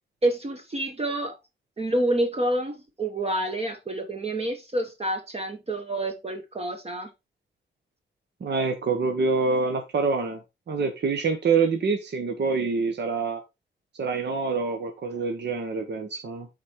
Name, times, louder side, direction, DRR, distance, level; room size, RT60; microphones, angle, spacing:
voice 1, 0.2-1.4 1.8-7.1, right 1 dB, 30° right, 5 dB, 1.3 m, -28 dB
voice 2, 8.4-10.4 10.7-13.4 14.0-16.5, right 4 dB, 65° right, 5 dB, 1.3 m, -26 dB
8.3 x 4.3 x 4.6 m, 0.24 s
wide cardioid pair, 110°, 19 cm